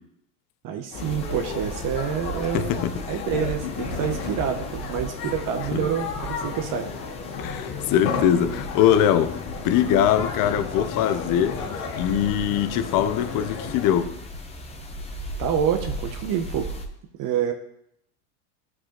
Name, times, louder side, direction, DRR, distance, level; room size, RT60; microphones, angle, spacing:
voice 1, 0.6-2.8 3.1-6.9 15.4-16.7 17.2-17.5, right 8 dB, 45° right, 0.8 m, -27 dB
sound 1, 0.9-14.0, left 6 dB, 80° left, 1.4 m, -34 dB
sound 2, 1.0-16.9, equal, 15° left, 0.9 m, -37 dB
voice 2, 2.5-3.4 5.7-5.9 7.4-9.4 9.6-11.6 11.9-14.2, left 10 dB, 45° left, 0.7 m, -22 dB
11.0 x 4.9 x 3.0 m
hypercardioid pair, 95°, 46 cm